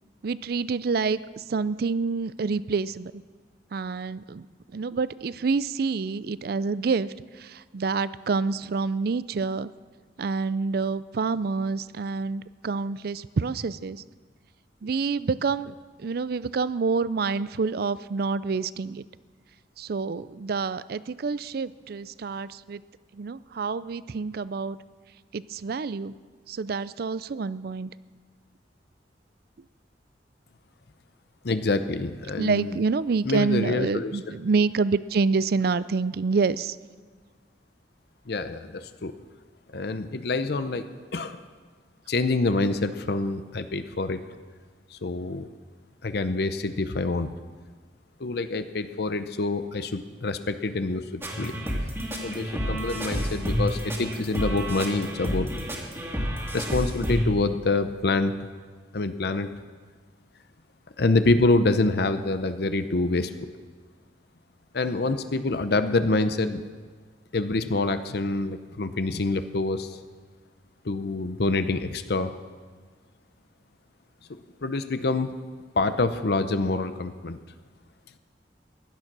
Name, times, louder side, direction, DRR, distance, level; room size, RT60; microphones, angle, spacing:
voice 1, 0.2-3.2 3.7-4.5 4.7-9.7 10.2-14.0 14.8-19.0 19.8-22.8 23.1-24.8 25.3-26.1 26.5-27.9 32.4-36.8, right 4 dB, 60° right, 17 dB, 0.4 m, -27 dB
voice 2, 31.4-32.8 33.2-34.4 38.3-39.1 39.7-40.8 41.1-41.4 42.1-44.2 44.9-45.5 46.0-47.3 48.2-51.6 52.2-55.5 56.5-58.3 58.9-59.5 61.0-63.5 64.7-66.6 67.3-70.0 70.8-72.3 74.6-75.3 75.8-77.4, left 3 dB, 65° left, 10 dB, 0.7 m, -26 dB
sound 1, 51.2-57.2, equal, 15° right, 2.2 m, -30 dB
16.0 x 11.5 x 6.1 m, 1.5 s
head